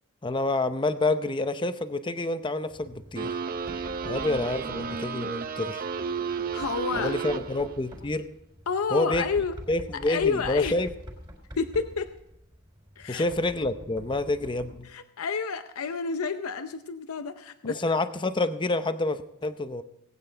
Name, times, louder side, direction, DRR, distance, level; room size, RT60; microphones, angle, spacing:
voice 1, 0.2-3.4 4.0-5.8 6.9-8.3 8.9-9.3 9.7-10.9 13.1-14.9 17.6-19.8, left 2 dB, 20° left, 11 dB, 0.7 m, -28 dB
Knock, 2.7-14.9, equal, 20° right, 3.9 m, -46 dB
sound 1, 3.2-7.8, right 5 dB, 40° right, 0.6 m, -32 dB
voice 2, 6.3-7.4 8.7-9.5 10.1-10.8 11.6-12.1 13.0-13.3 14.8-17.8, left 5 dB, 70° left, 9 dB, 0.6 m, -30 dB
19.5 x 9.0 x 4.5 m, 0.83 s
head